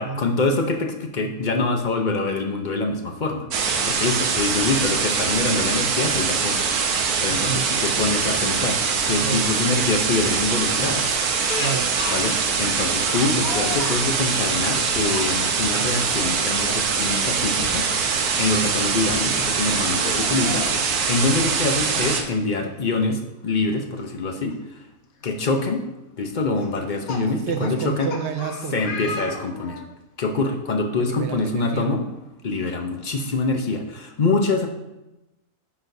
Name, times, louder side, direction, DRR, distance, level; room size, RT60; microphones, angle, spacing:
voice 1, 0.0-6.6 6.9-11.2 12.1-24.8 25.2-25.8 26.2-28.1 28.7-29.8 30.2-32.0 32.4-34.7, left 3 dB, 45° left, 4 dB, 0.6 m, -25 dB
sound 1, 3.5-22.2, right 5 dB, 85° right, 1.3 m, -23 dB
voice 2, 4.0-4.6 7.3-7.7 9.2-9.5 11.6-11.9 27.4-29.2 31.0-31.9, right 6 dB, 65° right, 6 dB, 0.7 m, -30 dB
Speech, 11.5-12.2 13.1-14.0 15.0-15.3 16.6-16.8 17.2-17.3 19.0-19.1 19.9-20.8 22.1-22.2 22.5-22.6 24.5-24.6 25.2-25.5 26.6-29.9, left 3 dB, 75° left, 1.3 m, -34 dB
9.6 x 6.1 x 2.7 m, 0.97 s
omnidirectional pair, 1.6 m